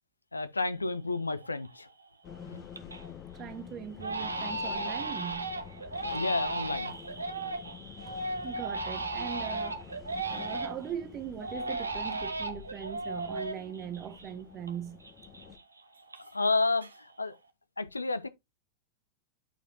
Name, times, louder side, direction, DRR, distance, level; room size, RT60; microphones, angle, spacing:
voice 1, 0.3-1.9 2.4-2.6 6.0-6.9 16.3-17.4 17.8-18.3, left 3 dB, 80° left, 0.5 m, -31 dB
Crying sobbing, 0.8-0.9 1.4-1.9 2.3-3.1 3.4-3.6 4.0-10.9 11.4-14.7 15.0-16.5 16.8-17.3, right 2 dB, 80° right, 1.0 m, -36 dB
sound 1, 2.2-15.6, left 7 dB, 30° left, 0.9 m, -48 dB
voice 2, 3.3-5.6 8.0-9.8 10.3-15.0, right 9 dB, 30° right, 1.0 m, -40 dB
8.9 x 4.8 x 2.8 m
figure-of-eight pair, 90°, 0 cm